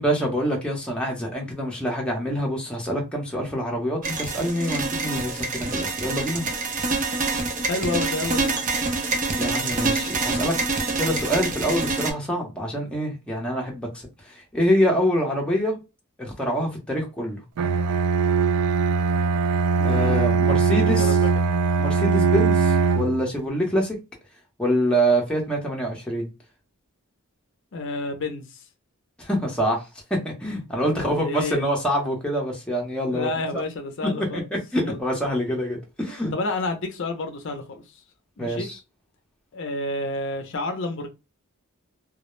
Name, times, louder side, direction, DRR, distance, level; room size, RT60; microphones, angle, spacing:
voice 1, 0.0-6.4 9.4-10.5 11.0-15.8 16.2-17.4 19.8-21.2 21.8-24.0 24.6-26.3 29.2-29.8 30.1-33.3 34.2-34.4 34.7-36.3 38.4-38.8, equal, 5° left, 0.6 m, -25 dB
sound 1, 4.0-12.1, right 3 dB, 35° right, 0.5 m, -26 dB
voice 2, 7.6-8.6 19.8-20.5 20.8-21.3 27.7-28.7 30.8-31.7 33.1-34.4 34.8-35.0 36.3-38.0 38.4-38.7 39.5-41.1, left 2 dB, 55° left, 0.5 m, -30 dB
Bowed string instrument, 17.6-23.2, right 4 dB, 90° right, 0.3 m, -21 dB
2.2 x 2.0 x 3.0 m
head